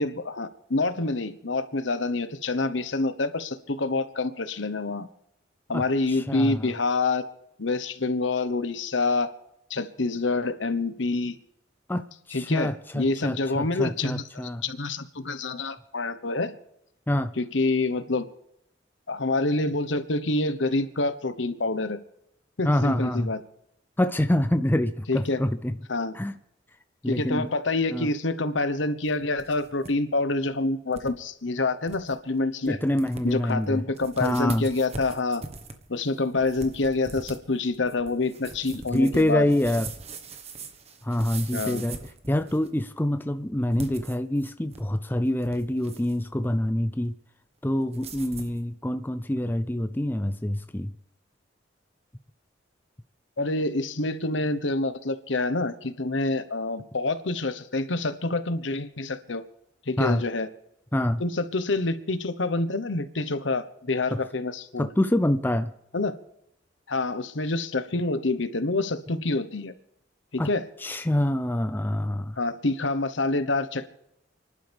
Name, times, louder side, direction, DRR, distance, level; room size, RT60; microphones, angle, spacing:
voice 1, 0.0-5.1 5.7-7.2 7.6-9.3 9.7-11.3 12.3-16.6 17.4-18.3 19.1-22.0 22.6-23.4 25.1-25.4 25.9-26.2 27.1-32.8 33.2-35.4 35.9-39.5 41.5-41.8 53.4-59.4 59.9-60.5 61.2-64.9 65.9-66.2 66.9-69.7 70.3-70.6 72.4-73.9, left 3 dB, 80° left, 1.1 m, -27 dB
voice 2, 5.7-6.7 11.9-14.6 17.1-17.3 22.6-23.3 24.0-25.7 26.1-26.4 27.0-27.5 27.9-28.1 32.6-33.8 34.2-34.7 38.9-39.9 41.0-42.0 42.3-47.2 47.6-50.9 60.0-60.2 60.9-61.2 64.1-64.2 64.8-65.7 70.4-70.5 70.8-72.4, left 1 dB, 10° left, 0.5 m, -26 dB
sound 1, 29.1-29.9 30.2-30.3 30.9-31.1 31.5-31.6 31.9-32.2 32.7-32.8 33.0-33.5 33.9-42.8 43.6-44.9 45.2-46.2 47.9-48.6, right 3 dB, 35° right, 1.3 m, -41 dB
30.0 x 11.5 x 3.5 m
head